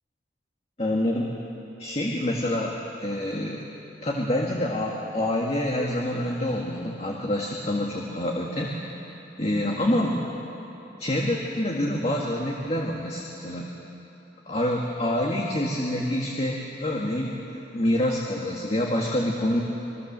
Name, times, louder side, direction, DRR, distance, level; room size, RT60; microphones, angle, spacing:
voice 1, 0.8-1.3 1.8-2.7 3.0-3.6 4.0-8.7 9.4-10.2 11.0-13.7 14.5-19.6, left 1 dB, 35° left, -1 dB, 1.9 m, -26 dB
27.5 x 21.0 x 7.5 m, 2.9 s
head